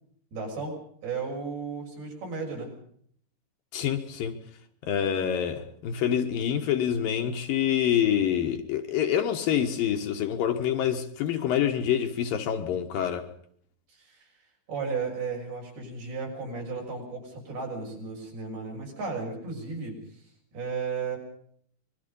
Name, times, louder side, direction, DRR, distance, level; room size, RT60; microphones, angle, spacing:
voice 1, 0.3-0.8 1.0-2.7 14.0-14.2 14.7-20.0 20.5-21.2, right 4 dB, 70° right, 8.4 m, -34 dB
voice 2, 3.7-4.4 4.8-13.2, left 9 dB, 65° left, 2.8 m, -26 dB
26.0 x 21.5 x 5.4 m
omnidirectional pair, 4.6 m